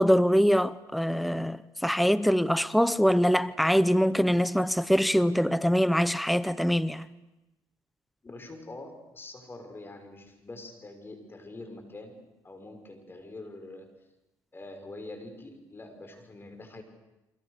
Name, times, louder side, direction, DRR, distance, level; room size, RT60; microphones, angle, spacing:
voice 1, 0.0-7.1, equal, ahead, 0.8 m, -23 dB
voice 2, 8.2-12.1 12.4-13.8 14.5-16.8, left 2 dB, 25° left, 6.2 m, -44 dB
30.0 x 24.0 x 6.8 m
supercardioid pair, 80°, 9 cm